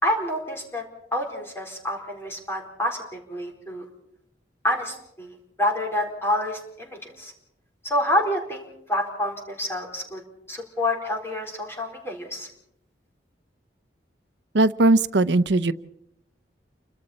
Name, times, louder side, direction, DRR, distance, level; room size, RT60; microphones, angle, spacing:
voice 1, 0.0-0.8 1.1-3.8 4.6-7.3 7.8-8.6 8.9-10.2 10.5-12.5, left 1 dB, 15° left, 0 dB, 4.2 m, -28 dB
voice 2, 14.5-15.7, right 2 dB, 75° right, 14 dB, 0.8 m, -19 dB
29.5 x 25.0 x 4.3 m, 0.75 s
head